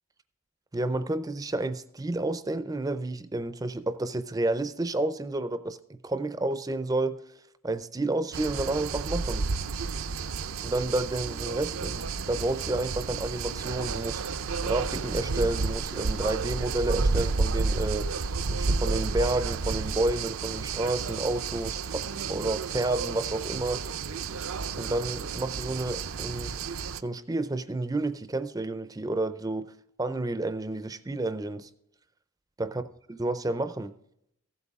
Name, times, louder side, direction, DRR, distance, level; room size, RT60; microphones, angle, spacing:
voice 1, 0.7-5.8 6.0-7.2 7.6-9.5 10.6-23.8 24.7-26.5 27.0-29.7 30.0-31.7 32.6-32.8 33.1-33.9, right 2 dB, 15° right, 0.4 m, -30 dB
sound 1, 8.3-27.0, right 4 dB, 70° right, 0.5 m, -31 dB
14.5 x 8.2 x 3.6 m
head